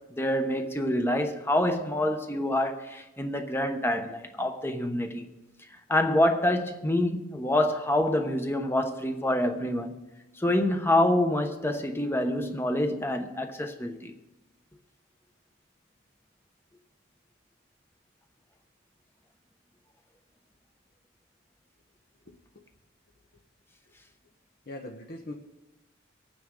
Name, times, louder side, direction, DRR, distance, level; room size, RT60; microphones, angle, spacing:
voice 1, 0.1-5.3 5.9-10.0 10.4-14.1, left 1 dB, 10° left, 1.0 m, -26 dB
voice 2, 22.3-22.6 24.7-25.3, left 1 dB, 50° left, 1.0 m, -41 dB
24.5 x 9.2 x 3.8 m
head